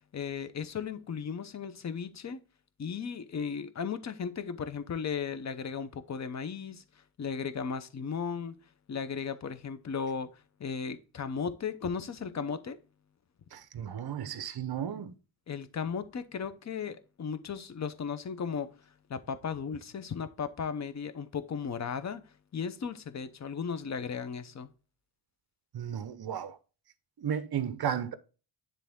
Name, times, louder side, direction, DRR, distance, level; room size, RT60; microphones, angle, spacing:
voice 1, 0.1-2.4 2.8-6.8 7.2-8.6 8.9-10.3 10.6-12.8 15.5-18.7 19.1-22.2 22.5-24.7, left 6 dB, 35° left, 0.7 m, -36 dB
voice 2, 13.5-15.1 25.7-26.6 27.2-28.1, right 9 dB, 50° right, 0.8 m, -34 dB
10.0 x 3.4 x 3.5 m
wide cardioid pair, 115°, 49 cm